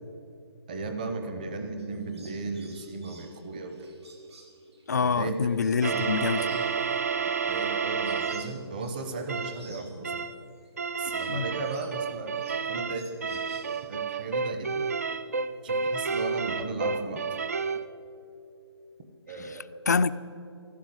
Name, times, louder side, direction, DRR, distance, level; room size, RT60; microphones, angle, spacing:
voice 1, 0.7-3.9 5.0-5.5 5.8-6.8 7.2-10.2 11.0-12.4 12.7-14.9 15.6-17.2 19.3-19.8, right 3 dB, 20° right, 0.9 m, -36 dB
sound 1, 1.8-10.7 11.0-14.0, right 3 dB, 70° right, 2.9 m, -55 dB
voice 2, 4.9-6.4 11.3-11.5 19.9-20.1, left 5 dB, 40° left, 0.4 m, -25 dB
sound 2, 5.8-8.5 9.3-9.6 10.0-10.4 10.8-17.8, right 5 dB, 35° right, 0.3 m, -30 dB
14.0 x 12.0 x 7.9 m
hypercardioid pair, 175°, 14 cm